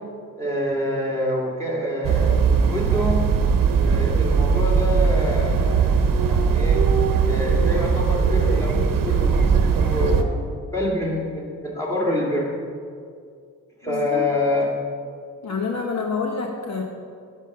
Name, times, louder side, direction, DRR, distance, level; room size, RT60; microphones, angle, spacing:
voice 1, 0.4-3.3 3.7-5.9 6.2-6.8 7.3-12.5 13.8-14.7, left 1 dB, 10° left, -3 dB, 2.3 m, -26 dB
sound 1, 2.0-10.2, right 6 dB, 80° right, 0.9 m, -19 dB
voice 2, 13.8-14.3 15.4-16.8, left 4 dB, 55° left, 2 dB, 0.9 m, -27 dB
11.0 x 5.5 x 6.5 m, 2.2 s
wide cardioid pair, 120°, 33 cm